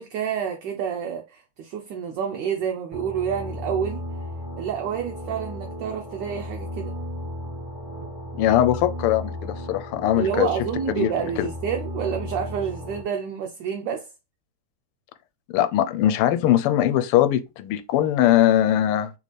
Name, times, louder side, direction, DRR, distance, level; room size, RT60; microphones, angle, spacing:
voice 1, 0.0-4.0 4.6-6.9 10.2-14.1, right 8 dB, 70° right, 1.1 m, -28 dB
s piano fours pad loop, 2.9-13.0, equal, 30° right, 0.6 m, -35 dB
voice 2, 8.4-10.5 11.0-11.1 11.4-11.5 15.5-19.1, left 12 dB, 85° left, 1.5 m, -21 dB
3.6 x 3.2 x 4.1 m
omnidirectional pair, 2.4 m